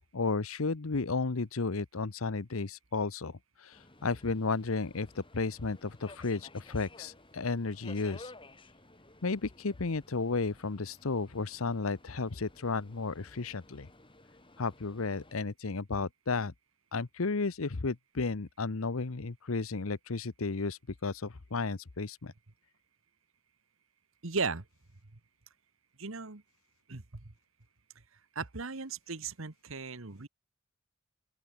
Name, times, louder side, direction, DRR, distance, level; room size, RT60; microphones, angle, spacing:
voice 1, 0.1-8.3 9.2-13.9 14.6-16.5 16.9-22.3, left 3 dB, 80° left, 0.9 m, -33 dB
Subway metro underground, 3.7-15.3, left 2 dB, 25° left, 5.3 m, -55 dB
voice 2, 24.2-24.6 26.0-26.4 26.9-27.2 28.3-30.3, right 4 dB, 70° right, 1.5 m, -36 dB
open air
head